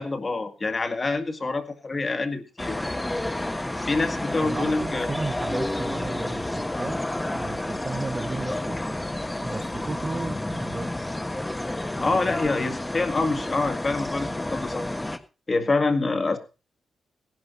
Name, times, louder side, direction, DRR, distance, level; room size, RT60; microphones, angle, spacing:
voice 1, 0.0-2.8 3.8-5.1 12.0-14.8 15.5-16.4, left 3 dB, 30° left, 7 dB, 2.0 m, -26 dB
sound 1, 2.6-15.2, left 1 dB, 10° left, 1.4 m, -30 dB
voice 2, 4.4-7.0 7.3-9.0 9.4-11.0 11.9-12.3, right 3 dB, 30° right, 10 dB, 1.0 m, -34 dB
17.0 x 11.0 x 4.0 m, 0.31 s
cardioid pair, 115°, 0 cm